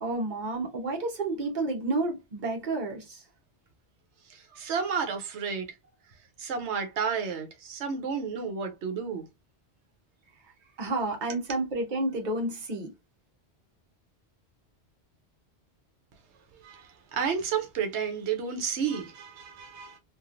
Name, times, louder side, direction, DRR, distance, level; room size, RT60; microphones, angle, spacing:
voice 1, 0.0-3.2 10.8-12.9, right 2 dB, 45° right, 1.0 m, -30 dB
voice 2, 4.3-5.7 6.4-9.2 16.6-20.0, right 6 dB, 85° right, 0.9 m, -31 dB
3.0 x 2.4 x 2.4 m
omnidirectional pair, 1.1 m